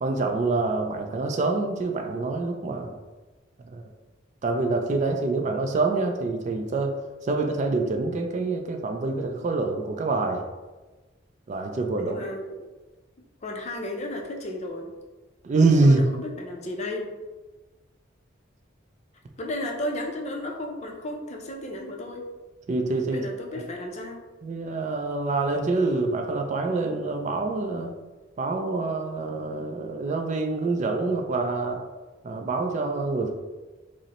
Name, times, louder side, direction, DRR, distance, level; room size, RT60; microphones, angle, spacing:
voice 1, 0.0-3.0 3.7-3.8 4.4-6.9 7.2-10.4 11.5-12.1 15.4-16.0 22.7-23.3 24.4-27.9 28.4-31.8 32.2-33.3, right 3 dB, 40° right, 4 dB, 0.3 m, -25 dB
voice 2, 11.9-12.6 13.4-14.9 15.8-17.1 19.4-22.2 23.1-24.2, left 1 dB, 35° left, 1 dB, 0.5 m, -34 dB
5.1 x 2.1 x 2.9 m, 1.2 s
head